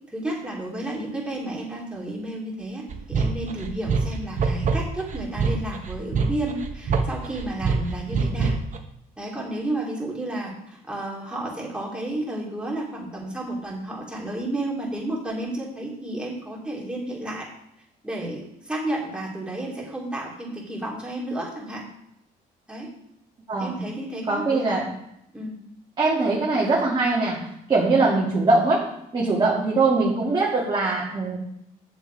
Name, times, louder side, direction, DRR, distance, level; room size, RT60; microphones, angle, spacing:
voice 1, 0.1-8.5 9.2-17.5 18.0-21.8 22.7-22.9 23.6-24.8 25.3-25.6 29.2-29.5, right 1 dB, 5° right, -4 dB, 3.1 m, -32 dB
sound 1, 2.9-8.8, right 4 dB, 45° right, 1.1 m, -25 dB
voice 2, 23.5-23.8 24.3-24.8 26.0-31.4, right 3 dB, 25° right, -5 dB, 2.2 m, -22 dB
8.3 x 7.0 x 4.7 m, 0.78 s
cardioid pair, 110°, 17 cm